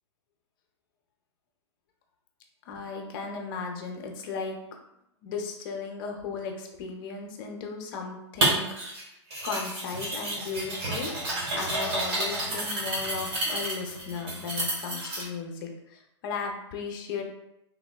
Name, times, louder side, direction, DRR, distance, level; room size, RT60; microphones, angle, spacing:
voice 1, 2.7-4.6 5.2-11.1 11.5-17.2, left 5 dB, 50° left, 2 dB, 0.6 m, -36 dB
sound 1, 8.4-9.0 9.3-15.2, right 1 dB, 60° right, 1.2 m, -30 dB
3.5 x 2.1 x 2.2 m, 0.84 s
hypercardioid pair, 125°, 15 cm